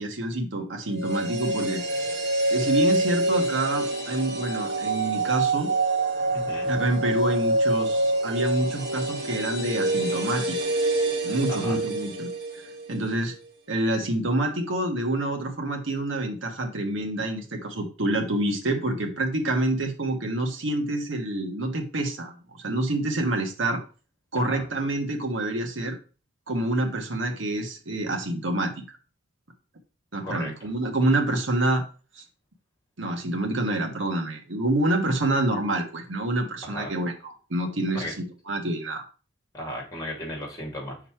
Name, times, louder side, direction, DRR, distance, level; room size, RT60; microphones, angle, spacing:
voice 1, 0.0-1.8 2.5-5.7 6.7-10.9 11.2-12.3 12.9-13.3 13.7-23.8 24.3-26.0 26.5-28.7 30.1-31.8 32.2-32.3 33.0-39.0, right 1 dB, 70° right, 4 dB, 1.2 m, -27 dB
sound 1, 0.9-13.0 13.3-13.4, right 2 dB, 55° right, 1.5 m, -26 dB
voice 2, 6.3-6.7 11.5-11.8 24.4-24.6 30.2-30.5 36.6-36.9 37.9-38.1 39.5-41.0, left 1 dB, 20° left, -1 dB, 2.2 m, -35 dB
5.7 x 4.1 x 4.3 m, 0.36 s
head